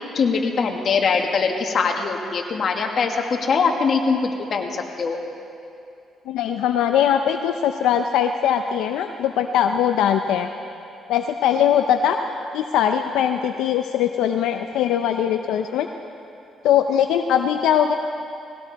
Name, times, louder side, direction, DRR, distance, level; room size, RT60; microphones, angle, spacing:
voice 1, 0.1-5.2, left 5 dB, 55° left, 3 dB, 1.8 m, -22 dB
voice 2, 6.3-10.5 11.1-12.2 12.5-15.9 16.6-17.9, left 9 dB, 90° left, 6 dB, 0.6 m, -21 dB
19.5 x 17.5 x 4.1 m, 2.6 s
cardioid pair, 90°, 0 cm